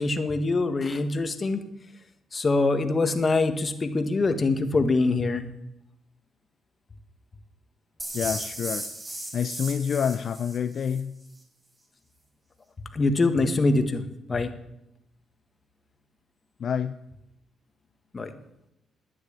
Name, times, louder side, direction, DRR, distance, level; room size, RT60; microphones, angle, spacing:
voice 1, 0.0-1.6 2.3-5.5 12.9-14.0 14.3-14.5 18.1-18.3, left 3 dB, 30° left, 8 dB, 1.7 m, -24 dB
sound 1, 8.0-11.0, right 1 dB, 20° right, 4.7 m, -36 dB
voice 2, 8.1-8.8 9.3-11.1 16.6-16.9, left 7 dB, 55° left, 11 dB, 0.5 m, -27 dB
12.0 x 9.7 x 9.0 m, 0.86 s
cardioid pair, 90°, 0 cm